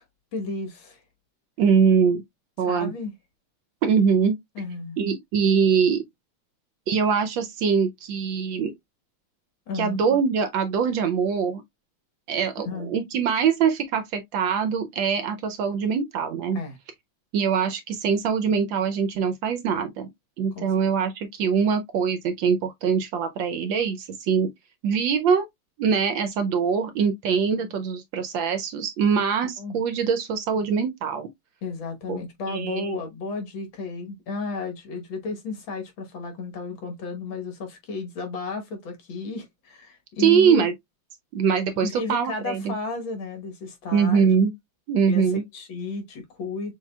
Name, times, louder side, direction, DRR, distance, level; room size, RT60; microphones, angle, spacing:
voice 1, 0.3-1.0 2.6-3.1 4.6-5.0 9.7-10.0 12.7-12.9 16.5-16.8 20.5-20.7 27.6-27.7 29.6-29.8 31.6-40.7 41.8-44.4 45.1-45.3 45.5-46.7, left 3 dB, 65° left, 1.9 m, -33 dB
voice 2, 1.6-2.2 2.6-2.9 3.8-4.4 5.0-6.0 6.9-8.7 9.7-11.6 12.3-16.6 17.3-20.1 20.4-24.5 24.8-25.5 25.8-31.3 32.1-32.2 32.5-32.9 40.2-40.7 41.3-42.7 43.9-44.5 44.9-45.4, right 6 dB, 75° right, 1.2 m, -23 dB
6.5 x 2.9 x 2.2 m
omnidirectional pair, 2.4 m